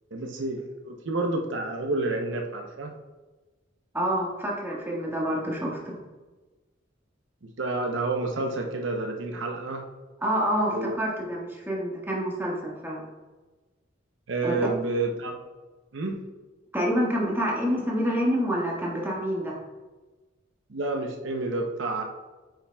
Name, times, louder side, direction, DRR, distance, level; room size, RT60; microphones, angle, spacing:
voice 1, 0.1-2.9 7.6-9.8 10.7-11.0 14.3-15.3 15.9-16.2 20.7-22.0, right 2 dB, 75° right, 2 dB, 0.7 m, -29 dB
voice 2, 3.9-6.0 10.2-13.1 14.4-14.7 16.7-19.6, equal, 10° right, -4 dB, 1.5 m, -27 dB
8.6 x 5.8 x 2.3 m, 1.2 s
head